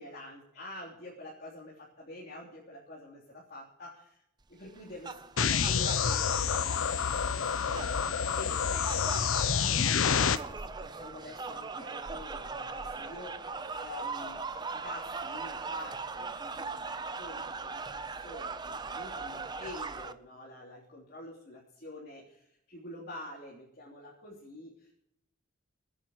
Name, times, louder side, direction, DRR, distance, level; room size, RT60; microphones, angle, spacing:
voice 1, 0.0-4.2 4.5-24.9, left 1 dB, 50° left, -6 dB, 3.4 m, -47 dB
sound 1, 4.7-20.1, right 4 dB, 20° right, 0.6 m, -40 dB
sound 2, 5.4-10.4, left 7 dB, 90° left, 0.7 m, -28 dB
27.5 x 10.0 x 3.1 m, 0.79 s
head